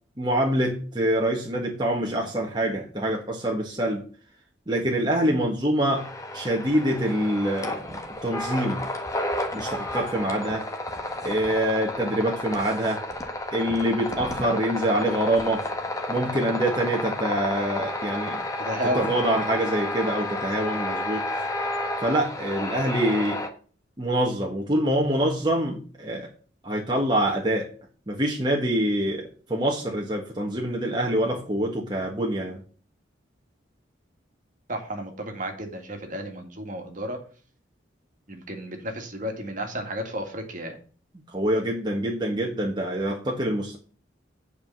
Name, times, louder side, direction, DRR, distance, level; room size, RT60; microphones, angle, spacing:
voice 1, 0.2-4.0 4.7-6.0 6.3-8.8 9.5-10.7 11.2-13.0 13.5-15.7 16.1-18.4 18.9-21.2 22.0-23.4 24.0-26.3 26.6-27.7 28.1-32.6 41.3-43.8, right 1 dB, 25° right, -1 dB, 1.5 m, -25 dB
sound 1, 5.9-23.5, left 1 dB, 15° left, 1.4 m, -31 dB
voice 2, 18.6-19.1 34.7-37.2 38.3-40.8, equal, 45° right, 4 dB, 2.1 m, -32 dB
8.7 x 4.9 x 7.2 m, 0.39 s
head